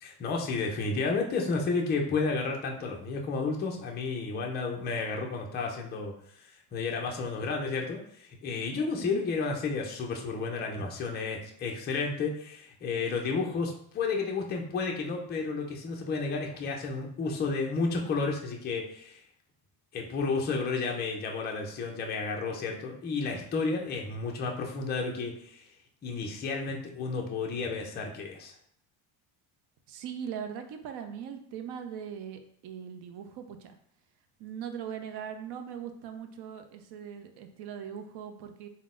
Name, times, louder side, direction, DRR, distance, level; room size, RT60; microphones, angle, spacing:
voice 1, 0.0-19.2 19.9-25.7 26.0-28.5, left 4 dB, 20° left, 1 dB, 0.4 m, -32 dB
voice 2, 29.9-33.8 34.4-38.7, right 8 dB, 55° right, 6 dB, 0.6 m, -40 dB
3.8 x 2.1 x 3.6 m, 0.65 s
cardioid pair, 135°, 50 cm